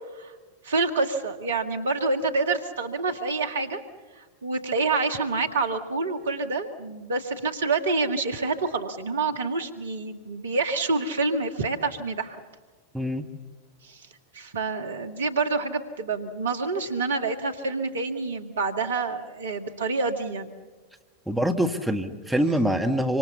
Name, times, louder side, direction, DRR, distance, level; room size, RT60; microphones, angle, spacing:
voice 1, 0.6-3.8 4.2-12.4 13.9-14.0 14.3-20.5, right 3 dB, 65° right, 8 dB, 1.7 m, -27 dB
voice 2, 12.9-13.2 21.3-23.2, equal, ahead, 3 dB, 1.5 m, -24 dB
26.0 x 25.5 x 7.1 m, 1.3 s
figure-of-eight pair, 90°, 0 cm